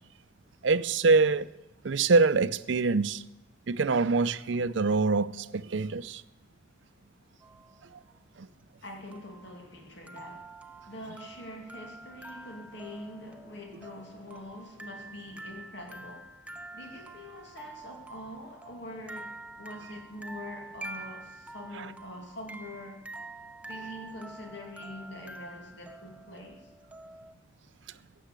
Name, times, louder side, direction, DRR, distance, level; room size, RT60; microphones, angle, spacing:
voice 1, 0.6-1.5 1.8-3.2 3.7-6.2 8.4-8.5, right 4 dB, 65° right, 0.5 m, -25 dB
sound 1, 7.4-7.8 9.1-27.3, right 2 dB, 5° right, 0.7 m, -47 dB
voice 2, 8.8-10.5 10.8-16.3 16.7-23.0 23.7-26.7, left 1 dB, 65° left, 2.4 m, -44 dB
16.0 x 7.7 x 8.2 m
head